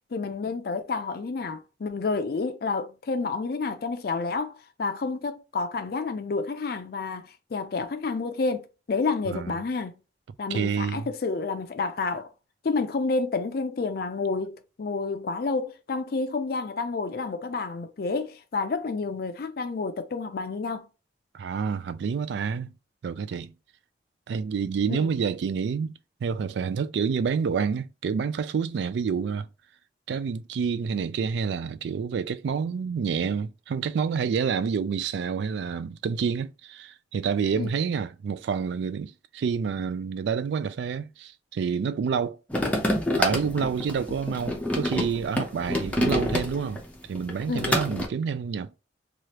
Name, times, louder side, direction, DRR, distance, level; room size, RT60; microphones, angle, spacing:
voice 1, 0.1-9.9 10.4-12.3 12.6-20.9 24.9-25.1 37.6-37.7 47.5-47.7, left 4 dB, 55° left, 0.4 m, -29 dB
voice 2, 10.5-11.1 21.3-22.7 23.0-23.5 24.3-25.9 26.2-29.5 30.1-42.4 43.2-46.8 47.1-48.8, right 6 dB, 75° right, 0.3 m, -28 dB
sound 1, 42.5-46.8 47.1-48.1, left 1 dB, 10° left, 0.6 m, -27 dB
3.2 x 2.4 x 2.8 m
head